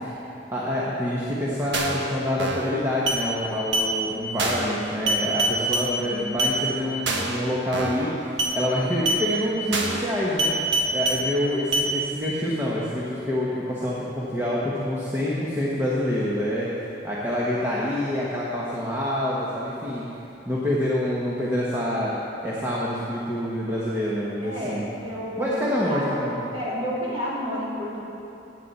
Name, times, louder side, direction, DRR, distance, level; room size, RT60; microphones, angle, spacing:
voice 1, 0.5-10.5 10.9-20.0 20.5-22.1 22.4-24.8 25.4-26.4, left 1 dB, 15° right, -7 dB, 1.2 m, -26 dB
sound 1, 1.7-2.0 2.4-2.7 3.1-3.2 3.7-3.9 4.4-4.7 5.1-5.9 6.4-6.6 7.1-7.4 7.7-8.0 8.4-8.6 9.1-9.2 9.7-10.0 10.4-11.2 11.7-11.9, right 1 dB, 70° right, 1.3 m, -24 dB
voice 2, 5.8-6.4 24.4-26.1 26.5-28.0, equal, 30° right, -7 dB, 2.9 m, -31 dB
16.0 x 9.0 x 4.2 m, 2.9 s
head